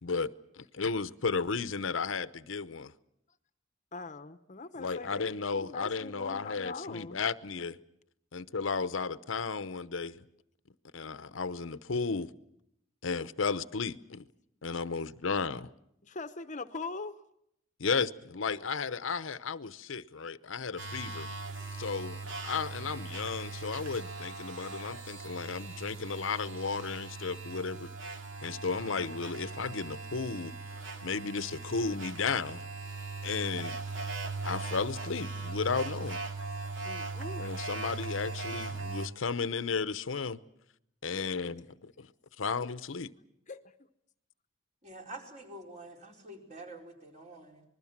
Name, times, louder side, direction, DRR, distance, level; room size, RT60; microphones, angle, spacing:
voice 1, 0.0-2.9 4.8-7.8 8.3-10.2 10.9-12.3 13.0-14.3 14.6-15.7 17.8-21.3 21.8-27.9 28.4-30.5 31.0-32.6 33.2-33.8 34.4-36.2 37.4-40.4 41.0-42.1 42.4-43.1, left 5 dB, 85° left, 0.8 m, -34 dB
voice 2, 3.9-7.2 16.0-17.2 36.8-37.5 41.2-41.5 43.5-43.6, left 3 dB, 40° left, 0.9 m, -42 dB
sound 1, 20.8-39.1, right 3 dB, 70° right, 2.4 m, -39 dB
voice 3, 44.8-47.6, right 2 dB, 40° right, 4.6 m, -47 dB
26.5 x 21.0 x 7.3 m
head